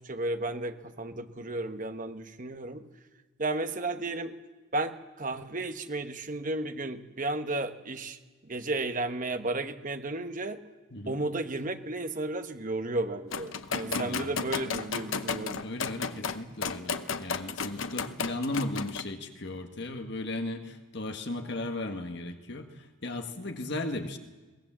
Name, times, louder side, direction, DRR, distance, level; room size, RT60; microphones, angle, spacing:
voice 1, 0.0-2.8 3.4-4.3 4.7-10.6 11.1-15.7, right 2 dB, 40° right, 8 dB, 1.1 m, -33 dB
voice 2, 10.9-11.2 13.8-14.3 15.5-24.2, left 2 dB, 55° left, 6 dB, 1.6 m, -36 dB
sound 1, 13.3-19.0, left 5 dB, 70° left, 0.9 m, -33 dB
23.0 x 19.0 x 7.5 m, 1.3 s
head